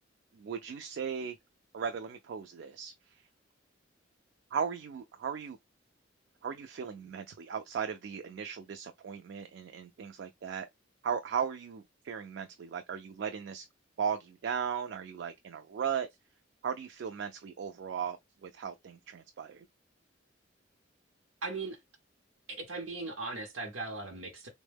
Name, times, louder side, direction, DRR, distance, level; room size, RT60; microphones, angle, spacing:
voice 1, 0.3-1.4 1.7-2.9 4.5-5.6 6.4-10.7 11.0-13.6 14.0-16.1 16.6-19.6, right 7 dB, 60° right, 0.3 m, -37 dB
voice 2, 21.4-21.8 22.5-24.5, right 3 dB, 90° right, 0.7 m, -38 dB
3.4 x 2.1 x 3.4 m
head